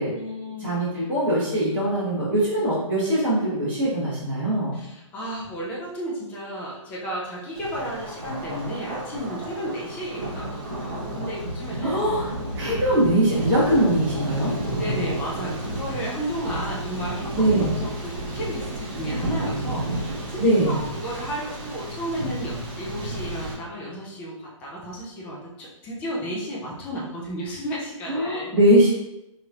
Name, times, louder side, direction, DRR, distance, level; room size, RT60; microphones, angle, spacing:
voice 1, 0.1-0.7 4.8-12.0 12.9-13.0 14.8-17.5 17.8-28.5, equal, 10° left, -4 dB, 0.4 m, -33 dB
voice 2, 0.6-4.8 11.8-12.3 12.5-14.5 17.3-17.7 20.4-20.8 28.1-28.9, right 1 dB, 10° right, -12 dB, 1.1 m, -21 dB
Thunder, 7.5-23.5, right 1 dB, 30° right, 0.9 m, -31 dB
3.0 x 3.0 x 2.4 m, 0.90 s
hypercardioid pair, 155°, 17 cm